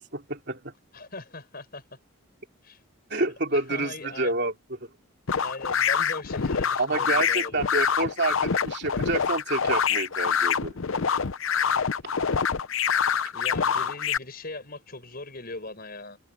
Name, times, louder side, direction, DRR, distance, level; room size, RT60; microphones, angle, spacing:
voice 1, 0.1-0.6 3.1-4.5 6.8-10.7, right 2 dB, 50° right, 3.4 m, -28 dB
voice 2, 0.9-1.8 2.6-2.8 3.5-4.3 5.4-7.8 13.3-16.2, left 2 dB, 45° left, 5.5 m, -40 dB
sound 1, 5.3-14.2, left 7 dB, 70° left, 0.7 m, -25 dB
head